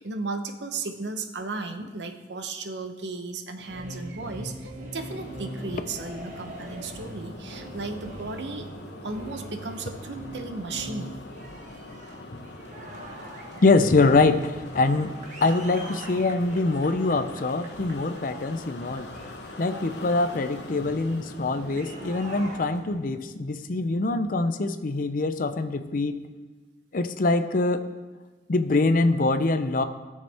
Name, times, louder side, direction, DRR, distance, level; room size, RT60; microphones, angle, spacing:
voice 1, 0.0-8.7 9.0-11.2, right 3 dB, 85° right, 7 dB, 0.9 m, -35 dB
sound 1, 3.6-23.1, right 1 dB, 45° right, 1.3 m, -43 dB
sound 2, 5.0-22.6, left 2 dB, 75° left, 1.1 m, -43 dB
voice 2, 13.6-19.1 19.6-26.2 26.9-27.9 28.5-29.8, left 3 dB, 50° left, 10 dB, 0.6 m, -24 dB
17.5 x 6.6 x 3.4 m, 1.3 s
head